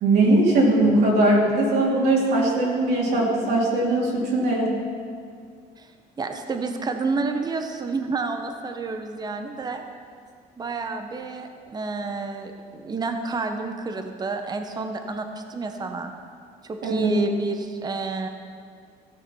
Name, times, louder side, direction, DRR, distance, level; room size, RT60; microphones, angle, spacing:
voice 1, 0.0-4.7 16.8-17.1, right 2 dB, 75° right, -4 dB, 2.8 m, -20 dB
voice 2, 6.2-9.8 10.6-16.1 16.6-18.3, right 3 dB, 25° right, 5 dB, 0.8 m, -29 dB
15.0 x 6.6 x 5.5 m, 2.2 s
cardioid pair, 110°, 17 cm